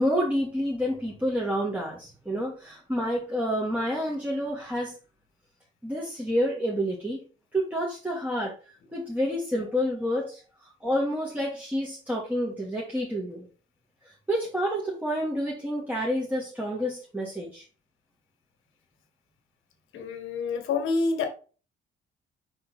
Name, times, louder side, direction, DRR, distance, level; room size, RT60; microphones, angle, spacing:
voice 1, 0.0-5.0 5.8-7.2 7.5-8.5 8.9-13.5 14.1-17.6, equal, 5° right, 1.7 m, -29 dB
voice 2, 19.9-21.3, left 4 dB, 80° left, 1.5 m, -27 dB
5.4 x 4.1 x 4.2 m
cardioid pair, 90°, 20 cm